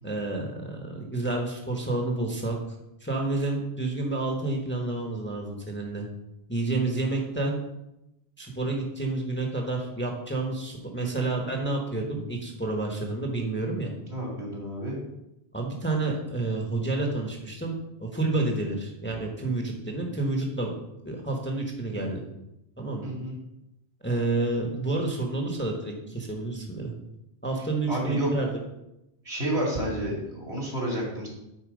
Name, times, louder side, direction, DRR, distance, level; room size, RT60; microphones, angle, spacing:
voice 1, 0.0-2.6 3.0-6.1 6.5-7.6 8.4-13.9 15.5-20.7 21.0-22.2 22.8-23.1 24.0-26.9 27.4-28.6, right 2 dB, 10° left, 1 dB, 1.1 m, -29 dB
voice 2, 11.0-11.4 14.1-15.0 23.0-23.4 27.9-28.3 29.2-31.3, right 1 dB, 70° right, -2 dB, 2.9 m, -31 dB
9.0 x 4.3 x 5.1 m, 0.88 s
omnidirectional pair, 1.1 m